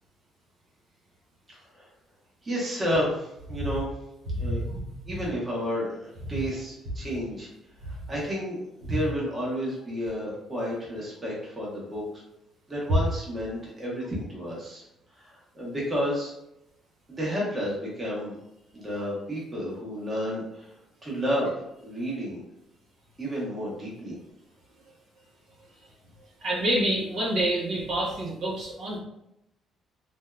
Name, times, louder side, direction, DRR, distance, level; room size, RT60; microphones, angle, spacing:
voice 1, 2.4-3.9 4.4-4.6 5.1-7.5 7.9-8.6 8.9-12.0 12.7-14.8 15.2-16.3 17.1-18.4 18.7-20.7 21.0-21.5 21.8-22.4 23.2-24.2, equal, 20° right, -5 dB, 1.0 m, -31 dB
voice 2, 4.3-4.8 6.3-6.4 7.8-7.9 26.4-29.0, right 1 dB, 55° right, -5 dB, 0.8 m, -27 dB
3.3 x 2.6 x 2.3 m, 0.83 s
cardioid pair, 150°, 0 cm